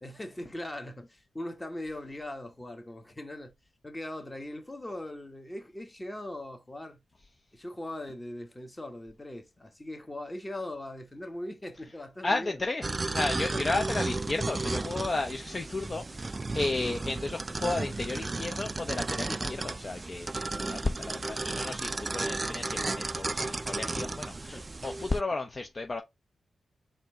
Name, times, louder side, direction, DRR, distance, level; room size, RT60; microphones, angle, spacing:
voice 1, 0.0-3.5 3.8-7.0 7.5-12.6 13.3-13.6 16.8-16.9 24.5-24.7, left 1 dB, 20° left, 1.4 m, -40 dB
voice 2, 12.2-26.0, left 3 dB, 40° left, 0.7 m, -33 dB
sound 1, 12.8-25.2, right 3 dB, 35° right, 0.3 m, -34 dB
4.2 x 2.7 x 4.3 m
cardioid pair, 55°, 0 cm